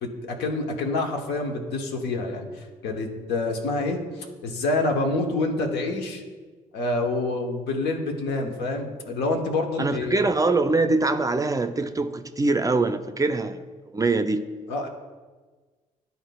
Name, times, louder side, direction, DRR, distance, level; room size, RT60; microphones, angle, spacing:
voice 1, 0.0-6.2 6.7-10.2 14.7-14.9, left 2 dB, 75° left, 2 dB, 1.0 m, -27 dB
voice 2, 9.8-13.6 13.9-14.5, right 3 dB, 20° right, 9 dB, 0.5 m, -23 dB
11.5 x 4.0 x 2.3 m, 1.4 s
hypercardioid pair, 50°, 17 cm